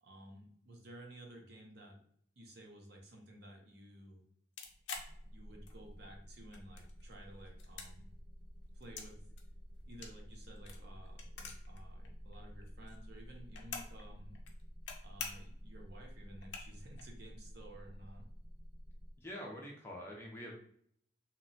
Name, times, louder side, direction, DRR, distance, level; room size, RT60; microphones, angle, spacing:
voice 1, 0.0-2.0 2.4-4.2 5.3-8.1 8.7-9.2 9.9-14.4 15.0-18.3, right 1 dB, 55° right, 1 dB, 0.6 m, -54 dB
sound 1, 4.6-6.0 6.3-7.1 7.5-9.1 9.4-11.8 12.0-12.1 12.3-14.0 14.3-14.9 15.2-15.6 16.0-16.1 16.4-17.0, left 6 dB, 65° left, 0.4 m, -46 dB
sound 2, 4.9-19.2, equal, 20° right, 0.8 m, -51 dB
voice 2, 19.2-20.5, equal, 10° left, -2 dB, 0.4 m, -45 dB
2.8 x 2.1 x 2.6 m, 0.63 s
head